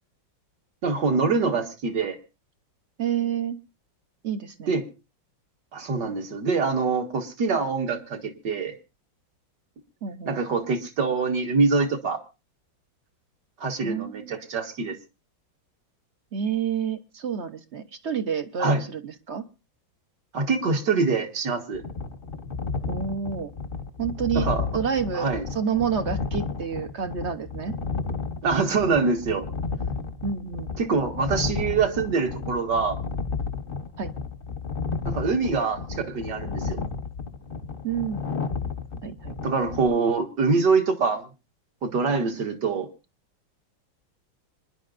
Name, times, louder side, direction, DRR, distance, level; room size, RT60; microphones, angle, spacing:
voice 1, 0.8-2.2 4.7-4.9 5.7-8.7 10.3-12.2 13.6-15.0 18.6-18.8 20.3-21.8 24.3-24.7 25.1-25.4 28.4-29.4 30.8-33.0 35.1-36.8 39.4-41.3 41.8-42.9, right 4 dB, 60° right, 5 dB, 2.3 m, -24 dB
voice 2, 3.0-3.6 4.2-4.7 10.0-10.4 13.8-14.3 16.3-19.4 22.9-23.5 24.0-24.5 24.7-25.3 25.5-27.7 30.2-30.8 34.0-34.1 37.8-38.3 39.0-39.4, right 7 dB, 45° right, 9 dB, 1.0 m, -29 dB
sound 1, 21.7-39.9, left 4 dB, 35° left, 0.9 m, -32 dB
26.0 x 11.0 x 2.5 m, 0.30 s
omnidirectional pair, 2.1 m